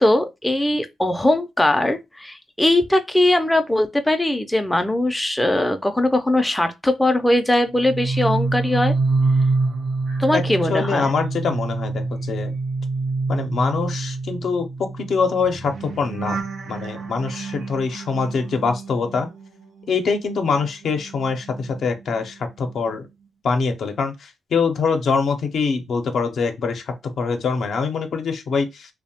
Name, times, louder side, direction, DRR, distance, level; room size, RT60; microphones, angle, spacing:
voice 1, 0.0-8.9 10.2-11.1, left 1 dB, 10° left, 0.4 m, -20 dB
sound 1, 7.7-20.0 20.3-22.4 22.7-23.1, right 3 dB, 70° right, 0.5 m, -27 dB
voice 2, 10.7-12.6 13.3-19.3 19.9-23.1 23.4-28.9, left 5 dB, 70° left, 0.5 m, -24 dB
2.6 x 2.0 x 2.7 m
cardioid pair, 65°, 0 cm